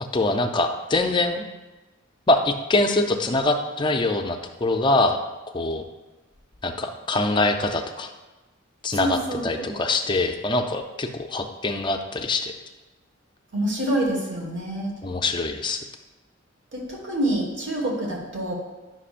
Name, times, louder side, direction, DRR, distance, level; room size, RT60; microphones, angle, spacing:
voice 1, 0.0-1.4 2.3-5.2 5.5-5.8 6.6-8.1 8.8-9.2 9.4-12.5 15.0-15.8, left 2 dB, 20° left, 5 dB, 0.4 m, -23 dB
voice 2, 8.9-9.8 13.5-14.9 16.7-18.5, right 1 dB, 60° right, -2 dB, 1.5 m, -27 dB
9.8 x 6.0 x 2.5 m, 1.1 s
head